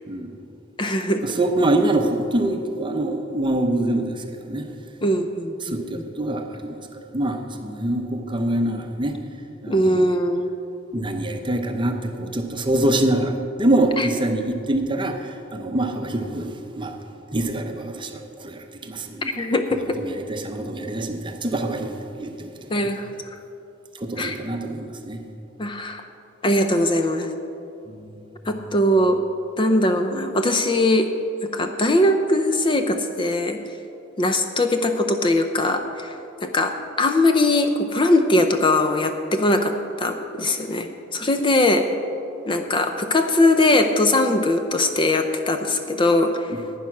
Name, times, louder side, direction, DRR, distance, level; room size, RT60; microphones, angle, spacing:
voice 1, 0.0-0.4 1.2-4.7 5.6-9.2 9.6-10.1 10.9-17.0 17.3-19.3 20.0-22.8 23.9-25.2 27.9-28.2 28.4-28.6, right 1 dB, 25° right, 5 dB, 0.7 m, -25 dB
voice 2, 0.8-1.2 5.0-6.0 9.7-10.5 14.0-14.1 19.4-20.0 22.7-23.1 24.2-24.4 25.6-26.0 26.4-27.3 28.5-29.2 29.6-31.1 31.5-33.6 34.2-36.1 36.4-41.9 42.5-46.6, left 1 dB, 25° left, 6 dB, 0.5 m, -21 dB
11.0 x 9.3 x 5.9 m, 2.7 s
head